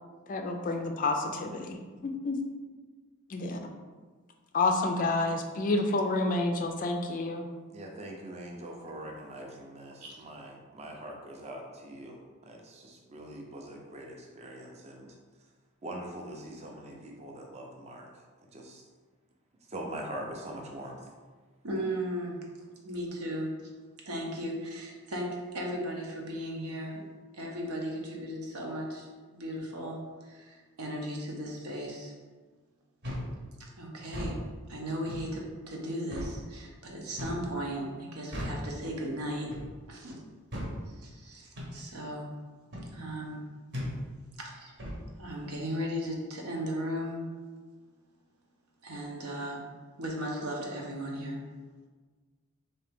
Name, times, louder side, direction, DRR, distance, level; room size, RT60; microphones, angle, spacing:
voice 1, 0.3-1.8 2.0-2.4 3.3-3.6 4.5-7.5, left 2 dB, 35° left, 4 dB, 0.3 m, -29 dB
voice 2, 7.7-15.1 15.8-18.1 18.5-18.8 19.7-21.0, right 1 dB, 30° right, 1 dB, 0.5 m, -43 dB
voice 3, 21.6-22.4 22.8-23.7 24.1-27.1 27.3-32.2 33.6-39.5 39.9-40.2 40.8-42.4 42.9-43.4 44.4-44.8 45.2-47.2 48.8-51.4, equal, 85° right, -1 dB, 0.8 m, -36 dB
sound 1, 33.0-33.3 34.0-34.4 35.1-35.3 36.1-36.3 37.2-37.5 38.3-38.6 39.5-39.7 40.5-40.7 41.5-41.7 42.7-42.9 43.7-43.9 44.8-45.0, equal, 50° right, 0.9 m, -36 dB
3.7 x 2.8 x 3.5 m, 1.4 s
head